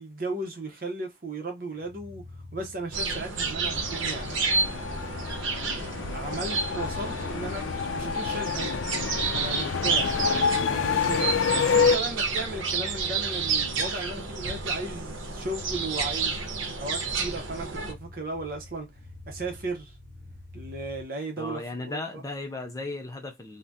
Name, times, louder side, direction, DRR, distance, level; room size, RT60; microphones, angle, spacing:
voice 1, 0.0-2.2 2.5-4.4 6.1-7.6 7.9-8.8 9.3-10.2 10.7-16.4 16.8-18.9 19.3-20.0 20.5-22.2, right 2 dB, 45° right, 0.7 m, -36 dB
sound 1, 1.7-21.0, left 2 dB, 55° left, 0.7 m, -46 dB
sound 2, 2.9-17.9, right 4 dB, 85° right, 0.7 m, -30 dB
sound 3, 3.7-12.0, left 6 dB, 85° left, 0.4 m, -28 dB
voice 2, 10.1-10.4 21.4-23.6, left 2 dB, 15° left, 0.4 m, -36 dB
2.7 x 2.1 x 3.4 m
head